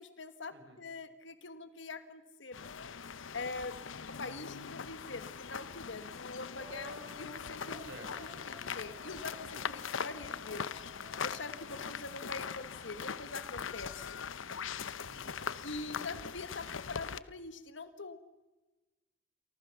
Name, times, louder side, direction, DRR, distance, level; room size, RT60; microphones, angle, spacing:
voice 1, 0.0-2.9 3.3-7.9 8.4-10.8 11.2-14.2 15.6-18.2, left 3 dB, 70° left, 10 dB, 1.5 m, -44 dB
sound 1, 2.5-17.2, left 6 dB, 90° left, 0.8 m, -41 dB
sound 2, 6.6-12.9, right 1 dB, 30° right, 3.2 m, -55 dB
voice 2, 7.8-8.4 15.0-15.4, right 1 dB, 60° right, 3 dB, 7.4 m, -52 dB
29.5 x 24.0 x 7.0 m, 1.2 s
head